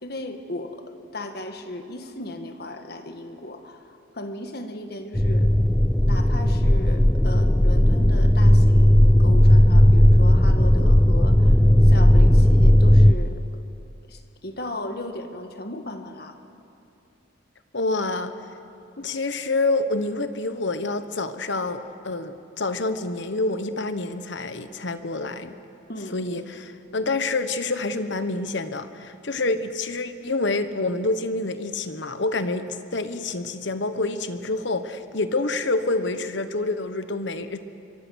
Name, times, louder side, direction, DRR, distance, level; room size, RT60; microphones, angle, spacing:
voice 1, 0.0-5.5 6.0-11.6 11.8-13.4 14.1-16.4 25.9-26.1, left 1 dB, 50° left, 6 dB, 1.5 m, -36 dB
sound 1, 5.1-13.1, left 1 dB, 10° left, 0.5 m, -15 dB
voice 2, 17.7-18.3 19.0-25.6 26.1-37.6, left 2 dB, 65° left, 10 dB, 1.1 m, -27 dB
23.5 x 23.5 x 6.4 m, 2.7 s
head